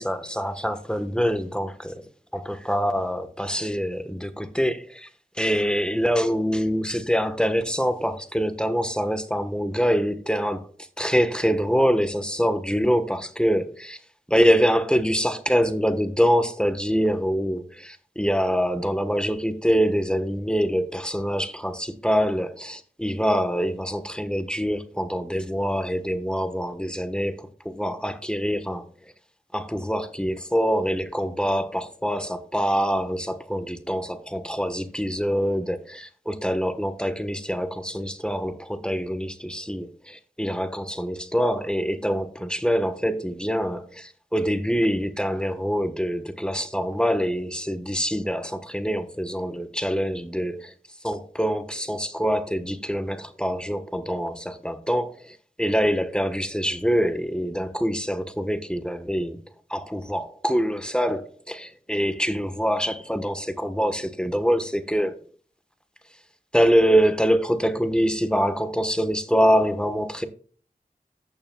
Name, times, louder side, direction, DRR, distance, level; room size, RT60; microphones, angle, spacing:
voice 1, 0.0-1.9 2.3-5.1 5.3-10.7 11.0-14.0 14.3-29.1 29.5-50.7 51.0-59.4 59.7-65.2 66.5-70.3, equal, 5° left, 1.2 m, -25 dB
14.0 x 8.7 x 2.3 m
wide cardioid pair, 45°, 16 cm